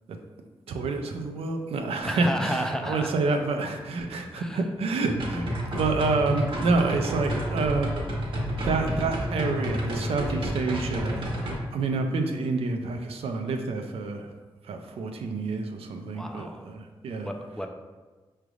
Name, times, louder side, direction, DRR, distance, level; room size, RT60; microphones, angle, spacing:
voice 1, 0.7-5.5 5.7-7.9 8.6-11.3 11.7-14.3 14.7-17.3, right 3 dB, 85° right, 4 dB, 0.4 m, -28 dB
voice 2, 2.0-3.1 4.3-4.7 11.3-11.6 16.1-16.7 17.3-17.7, equal, 5° left, 3 dB, 0.4 m, -32 dB
sound 1, 5.0-11.6, equal, 65° right, 1.0 m, -30 dB
4.9 x 3.2 x 2.4 m, 1.3 s
cardioid pair, 60°, 10 cm